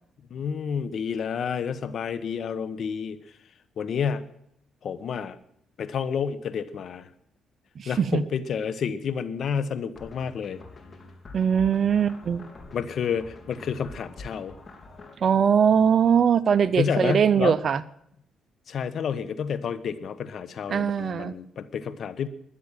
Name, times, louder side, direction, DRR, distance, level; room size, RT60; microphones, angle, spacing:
voice 1, 0.3-3.2 3.8-4.3 4.8-5.4 5.8-7.1 7.9-10.6 12.7-14.5 16.8-17.6 18.7-22.3, left 7 dB, 60° left, 14 dB, 1.2 m, -29 dB
voice 2, 7.8-8.2 11.3-12.4 15.2-17.8 20.7-21.3, right 7 dB, 50° right, 12 dB, 0.7 m, -21 dB
sound 1, 10.0-15.2, left 2 dB, 35° left, 3.2 m, -45 dB
12.5 x 10.5 x 9.0 m, 0.72 s
cardioid pair, 90°, 0 cm